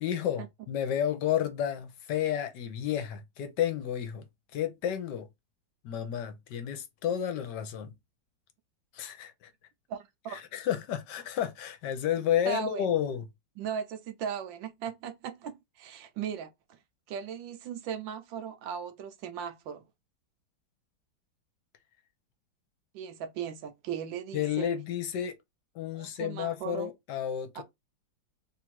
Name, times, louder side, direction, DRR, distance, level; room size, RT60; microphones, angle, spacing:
voice 1, 0.0-4.2 4.5-5.3 5.8-7.9 8.9-9.3 10.3-13.3 24.3-25.3 25.7-27.6, left 10 dB, 75° left, 1.3 m, -31 dB
voice 2, 9.9-10.4 12.5-13.0 13.6-16.8 17.1-19.9 22.9-24.7 25.9-26.9 27.5-27.6, right 8 dB, 85° right, 1.4 m, -38 dB
3.5 x 2.5 x 4.5 m
omnidirectional pair, 2.0 m